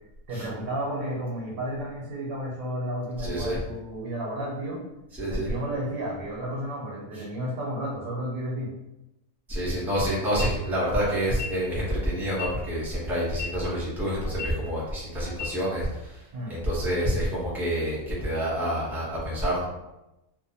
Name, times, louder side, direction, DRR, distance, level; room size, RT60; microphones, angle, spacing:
voice 1, 0.3-4.8 5.3-8.7 16.3-16.6, right 1 dB, 80° right, -3 dB, 1.1 m, -32 dB
voice 2, 3.2-3.6 5.2-5.5 7.1-7.2 9.5-16.2 16.5-19.6, equal, ahead, -7 dB, 0.4 m, -28 dB
sound 1, 10.4-10.5 11.3-11.5 12.3-12.5 13.3-13.5 14.3-14.5 15.3-15.5, left 6 dB, 60° left, 0.7 m, -34 dB
2.7 x 2.1 x 2.7 m, 0.94 s
omnidirectional pair, 1.4 m